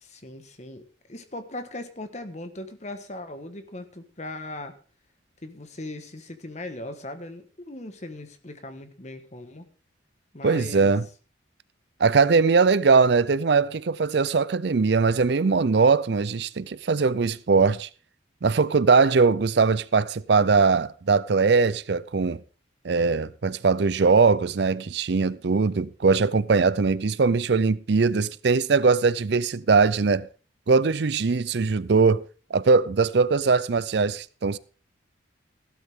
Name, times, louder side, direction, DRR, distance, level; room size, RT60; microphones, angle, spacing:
voice 1, 0.0-4.8 5.4-9.7 10.3-10.9, left 2 dB, 35° left, 1.4 m, -39 dB
voice 2, 10.4-11.0 12.0-17.9 18.4-22.4 22.8-30.3 30.7-34.6, right 4 dB, 60° right, 0.5 m, -21 dB
15.0 x 12.5 x 3.7 m
head